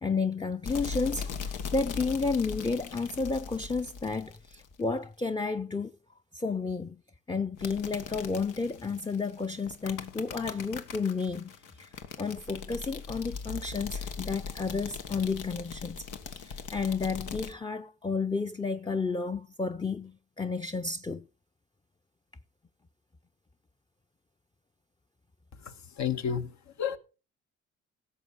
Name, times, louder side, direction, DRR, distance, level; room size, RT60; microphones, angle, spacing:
voice 1, 0.0-6.0 6.3-7.0 7.3-16.1 16.3-21.3, left 4 dB, 15° left, 0.7 m, -32 dB
sound 1, 0.6-4.8 7.6-17.5, left 5 dB, 90° left, 1.7 m, -40 dB
voice 2, 25.6-26.5 26.8-27.0, left 8 dB, 65° left, 1.6 m, -31 dB
16.5 x 7.2 x 5.5 m
cardioid pair, 90°, 30 cm